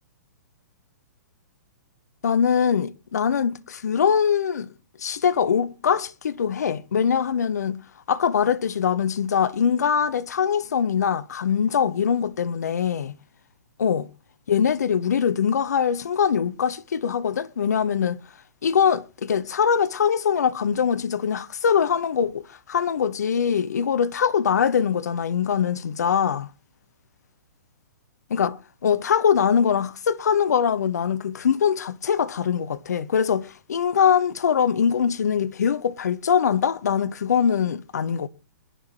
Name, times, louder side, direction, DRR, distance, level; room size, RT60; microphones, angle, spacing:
voice 1, 2.2-4.7 5.0-7.8 8.1-13.1 13.8-14.1 14.5-18.2 18.6-26.5 28.3-28.6 28.8-38.3, left 7 dB, 65° left, 1.0 m, -22 dB
22.0 x 11.0 x 3.0 m
figure-of-eight pair, 115°, 9 cm